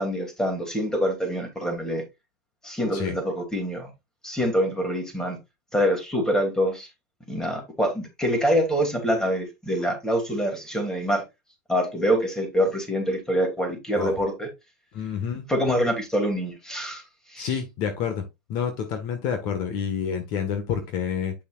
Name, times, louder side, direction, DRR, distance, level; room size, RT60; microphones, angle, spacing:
voice 1, 0.0-2.0 2.6-3.9 4.2-5.4 5.7-6.9 7.3-11.2 11.7-14.5 15.5-17.0 17.3-17.5, equal, 5° left, 2.7 m, -25 dB
voice 2, 14.9-15.4 17.4-18.2 18.5-21.3, left 7 dB, 45° left, 1.5 m, -28 dB
8.5 x 6.5 x 2.4 m
supercardioid pair, 140°, 10 cm